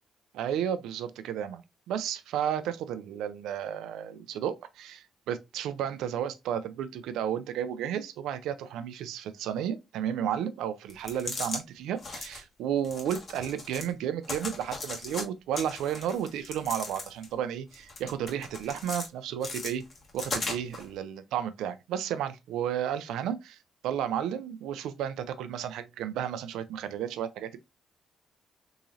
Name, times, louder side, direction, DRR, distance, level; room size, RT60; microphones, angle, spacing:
voice 1, 0.3-1.6 1.9-19.8 20.1-23.6 23.8-27.6, right 9 dB, 90° right, 0.4 m, -32 dB
sound 1, 10.9-11.6 12.0-12.4 12.8-13.9 14.2-15.2 15.5-17.3 17.7-19.1 19.4-20.8, left 3 dB, 45° left, 1.3 m, -37 dB
3.7 x 2.9 x 2.6 m
cardioid pair, 90°, 0 cm